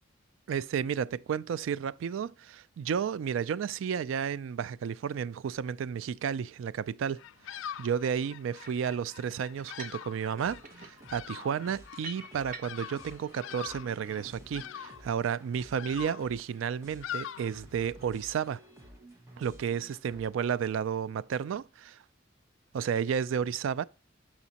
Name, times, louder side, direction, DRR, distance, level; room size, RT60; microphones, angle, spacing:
voice 1, 0.5-7.2 7.5-18.6 19.4-22.0 22.7-23.8, right 7 dB, 80° right, 0.3 m, -32 dB
Bird vocalization bird call bird song, 7.1-18.1, left 10 dB, 80° left, 0.3 m, -44 dB
sound 1, 8.6-8.9 9.6-10.1 10.4-13.0, right 2 dB, 45° right, 0.9 m, -47 dB
sound 2, 10.4-20.7, right 1 dB, 15° right, 1.4 m, -54 dB
7.1 x 5.9 x 2.8 m
head